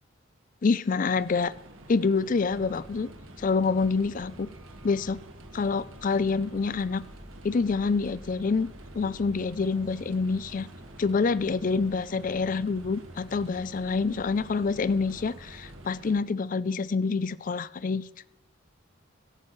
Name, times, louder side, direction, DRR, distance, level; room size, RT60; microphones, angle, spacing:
voice 1, 0.6-1.5 1.9-3.1 3.4-4.5 4.8-5.2 5.5-7.0 7.4-10.7 11.0-18.1, left 4 dB, 40° left, 18 dB, 0.4 m, -27 dB
sound 1, 1.1-16.2, right 1 dB, 85° right, 1.6 m, -49 dB
sound 2, 2.5-15.8, equal, 5° right, 2.2 m, -50 dB
17.5 x 12.0 x 3.2 m, 0.87 s
head